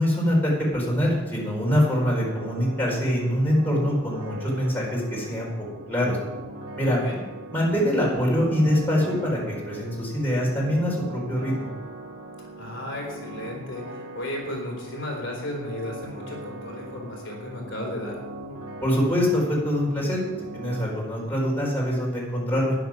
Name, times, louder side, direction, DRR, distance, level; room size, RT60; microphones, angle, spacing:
voice 1, 0.0-5.5 5.9-6.2 6.8-7.0 7.5-11.7 18.8-20.2 20.5-22.7, equal, 10° left, -4 dB, 4.0 m, -24 dB
sound 1, 1.6-20.8, right 2 dB, 85° right, 1.9 m, -40 dB
voice 2, 6.8-7.2 12.6-18.2, left 1 dB, 55° left, -1 dB, 3.4 m, -34 dB
12.5 x 10.5 x 6.0 m, 1.1 s
head